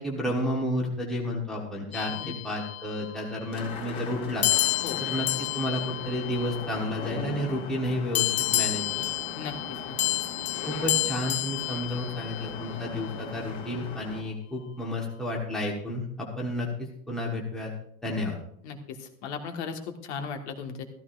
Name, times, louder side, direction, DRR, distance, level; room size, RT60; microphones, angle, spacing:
voice 1, 0.0-4.5 5.0-9.1 10.7-17.7 18.0-18.4, left 1 dB, ahead, -2 dB, 1.2 m, -31 dB
sound 1, 1.9-3.1 4.4-7.1 8.1-12.7, left 16 dB, 75° left, 0.9 m, -30 dB
sound 2, 3.5-14.2, left 4 dB, 20° left, 2.6 m, -39 dB
voice 2, 18.6-20.8, left 6 dB, 50° left, 5 dB, 1.7 m, -36 dB
14.5 x 14.5 x 2.6 m, 0.70 s
supercardioid pair, 165°, 43 cm